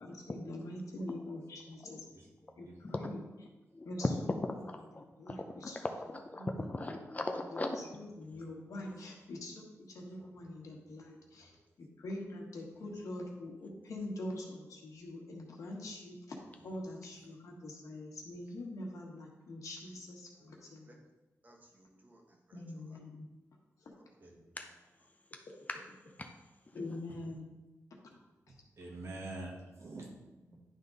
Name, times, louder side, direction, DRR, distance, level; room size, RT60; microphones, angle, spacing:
voice 1, 0.0-2.0 2.6-3.2 3.8-4.1 5.2-5.8 6.4-6.7 7.5-7.6 7.9-11.5 11.8-16.4 16.6-20.9 22.5-23.3 26.7-27.5 30.5-30.6, left 1 dB, 85° left, -1 dB, 1.5 m, -44 dB
voice 2, 2.0-3.0 8.2-8.9 10.1-11.7 12.7-13.0 13.8-13.9 16.6-16.7 20.5-20.7 24.2-24.6 27.1-27.2 28.5-30.6, right 2 dB, 60° right, -1 dB, 1.7 m, -50 dB
voice 3, 3.7-4.1 4.4-7.8 24.6-24.7 25.3-25.4 25.7-25.8 26.2-26.3 26.7-27.0, left 2 dB, 25° left, 4 dB, 0.5 m, -38 dB
voice 4, 21.4-23.0 24.0-24.3, right 1 dB, 30° right, 0 dB, 1.3 m, -63 dB
10.5 x 3.7 x 4.0 m, 1.1 s
wide cardioid pair, 130°, 6 cm